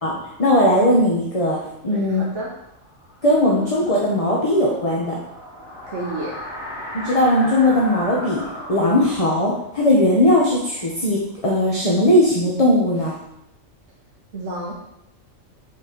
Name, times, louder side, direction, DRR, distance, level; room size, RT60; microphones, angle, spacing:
voice 1, 0.4-1.6 1.8-2.3 3.2-5.2 6.9-8.4 8.7-13.1, left 1 dB, 30° left, -4 dB, 1.0 m, -18 dB
voice 2, 1.8-2.5 5.9-6.4 14.3-14.7, right 2 dB, 65° right, -3 dB, 1.3 m, -30 dB
sound 1, 2.6-11.4, left 1 dB, 50° left, 1.5 m, -37 dB
5.6 x 4.2 x 5.0 m, 0.81 s
omnidirectional pair, 1.4 m